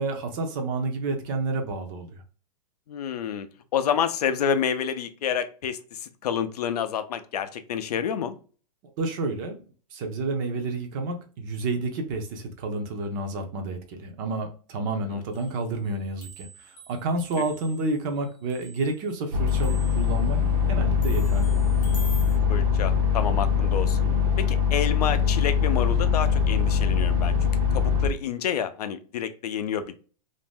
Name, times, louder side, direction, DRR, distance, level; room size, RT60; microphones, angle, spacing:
voice 1, 0.0-2.2 9.0-9.6 9.9-20.4 20.7-21.6, right 3 dB, 30° right, 5 dB, 0.5 m, -30 dB
voice 2, 2.9-3.5 3.7-8.3 22.5-24.1 24.4-30.0, left 8 dB, 75° left, 10 dB, 0.5 m, -29 dB
sound 1, 15.3-15.6 15.9-19.2 19.5-20.2 21.0-22.4, right 2 dB, 25° left, 0.6 m, -46 dB
sound 2, 19.3-28.1, left 6 dB, 65° right, 0.7 m, -22 dB
2.5 x 2.1 x 3.4 m, 0.39 s
hypercardioid pair, 155°, 21 cm